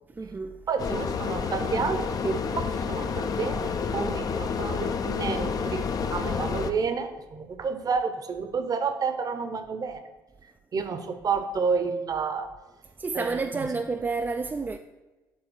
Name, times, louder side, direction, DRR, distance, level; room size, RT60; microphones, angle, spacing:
voice 1, 0.1-0.6 13.0-14.8, right 4 dB, 20° right, 0.4 m, -30 dB
voice 2, 0.7-10.0 10.7-12.5 13.1-13.7, right 5 dB, 35° right, 0.8 m, -30 dB
sound 1, 0.8-6.7, left 5 dB, 35° left, 0.5 m, -29 dB
7.4 x 3.6 x 6.5 m
figure-of-eight pair, 55°, 11 cm